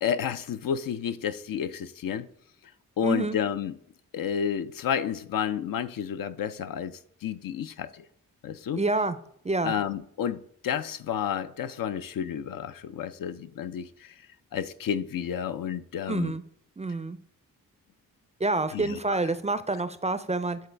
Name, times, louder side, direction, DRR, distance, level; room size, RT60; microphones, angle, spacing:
voice 1, 0.0-2.3 3.0-3.8 4.1-8.1 8.4-8.8 9.6-14.1 14.5-16.3 18.7-19.2, left 8 dB, 70° left, 0.5 m, -31 dB
voice 2, 3.0-3.4 8.7-9.2 9.4-9.7 16.1-16.4 16.8-17.2 18.4-20.6, right 3 dB, 20° right, 0.4 m, -27 dB
9.3 x 3.9 x 3.3 m
cardioid pair, 60°, 36 cm